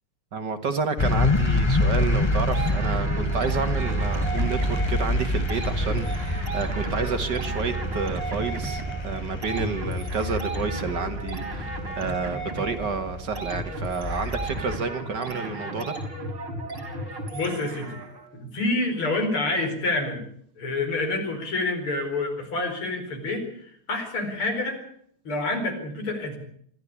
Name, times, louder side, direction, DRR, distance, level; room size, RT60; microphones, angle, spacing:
voice 1, 0.3-15.9, right 5 dB, 55° right, 8 dB, 2.2 m, -30 dB
sound 1, 1.0-14.8, left 1 dB, 20° left, 0.9 m, -27 dB
sound 2, 2.5-18.3, right 2 dB, 85° right, 5.4 m, -35 dB
voice 2, 17.3-18.0 18.3-20.2 20.6-24.8 25.3-26.4, left 2 dB, 80° left, 4 dB, 5.6 m, -28 dB
25.0 x 13.0 x 8.5 m, 0.64 s
omnidirectional pair, 2.3 m